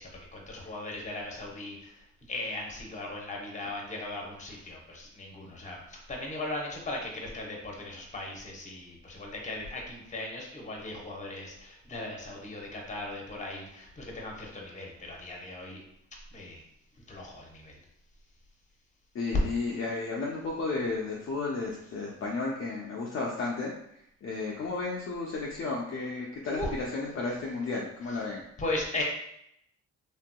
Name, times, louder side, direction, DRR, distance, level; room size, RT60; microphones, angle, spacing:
voice 1, 0.0-2.0 2.3-15.8 16.3-16.6 17.1-17.8 26.5-26.7 28.6-29.0, left 2 dB, 25° left, -1 dB, 0.9 m, -38 dB
voice 2, 19.1-23.7 24.2-26.6 26.9-28.4, left 3 dB, 45° left, -4 dB, 0.6 m, -33 dB
3.3 x 2.7 x 2.2 m, 0.76 s
cardioid pair, 90°, 30 cm